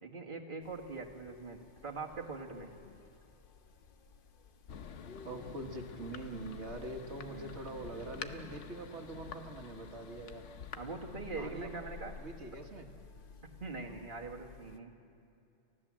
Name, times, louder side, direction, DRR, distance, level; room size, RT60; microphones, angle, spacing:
voice 1, 0.0-2.7 7.2-7.5 10.7-12.1 13.6-14.9, right 3 dB, 45° right, 2 dB, 1.8 m, -43 dB
sound 1, 0.6-14.8, left 5 dB, 50° left, 1.0 m, -54 dB
Thunder, 4.7-13.0, left 7 dB, 75° left, 1.2 m, -49 dB
voice 2, 5.2-10.4 11.4-11.8 12.2-12.9, right 2 dB, 65° right, 4 dB, 1.9 m, -44 dB
30.0 x 15.0 x 7.4 m, 2.8 s
omnidirectional pair, 1.3 m